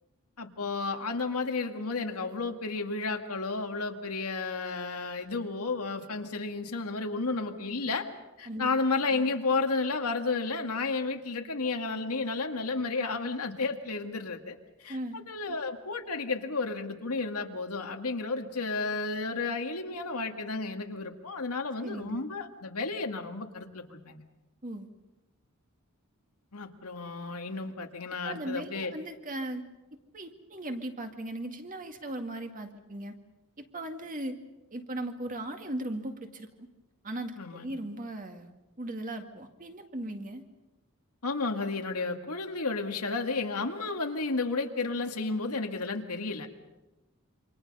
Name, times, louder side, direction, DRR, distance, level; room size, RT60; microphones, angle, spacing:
voice 1, 0.4-8.1 8.4-24.2 26.5-28.9 37.4-37.7 41.2-46.5, left 3 dB, 85° left, 4 dB, 2.1 m, -32 dB
voice 2, 14.9-15.2 21.8-22.2 24.6-24.9 28.2-29.6 30.1-33.1 33.6-34.4 34.7-36.7 37.0-38.5 38.8-40.4, right 1 dB, 35° right, 5 dB, 2.0 m, -37 dB
28.0 x 25.5 x 5.5 m, 1.0 s
head